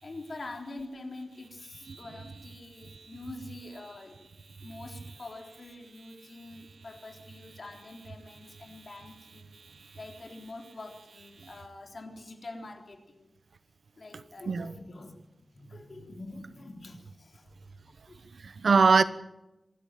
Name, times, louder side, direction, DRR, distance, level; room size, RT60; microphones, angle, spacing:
voice 1, 0.0-4.4 4.6-9.6 9.9-13.3 14.0-15.1 15.5-17.5 17.9-18.2, left 2 dB, 55° left, 3.7 m, -45 dB
voice 2, 2.8-3.2 6.5-6.6 9.5-10.0 11.4-11.5 14.5-14.7 18.3-19.0, right 4 dB, 80° right, 1.1 m, -25 dB
26.5 x 12.0 x 9.1 m
wide cardioid pair, 110°, 0 cm